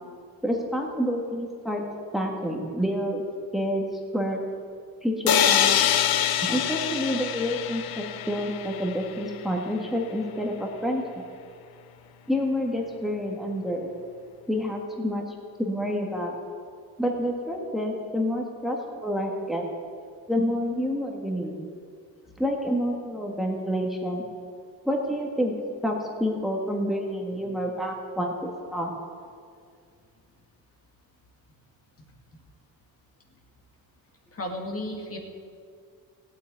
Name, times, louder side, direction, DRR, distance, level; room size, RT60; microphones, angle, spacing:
voice 1, 0.4-1.8 2.1-3.2 3.5-3.9 4.1-4.4 5.0-5.9 6.4-11.0 12.3-13.9 14.5-15.2 15.6-16.4 17.0-19.6 20.3-21.6 22.4-24.2 24.9-25.6 25.8-28.9, equal, ahead, 0 dB, 1.8 m, -28 dB
sound 1, 5.3-9.1, left 9 dB, 85° left, 0.8 m, -24 dB
voice 2, 34.3-35.2, left 1 dB, 40° left, 2 dB, 2.3 m, -33 dB
16.0 x 8.3 x 9.2 m, 2.2 s
cardioid pair, 125°, 36 cm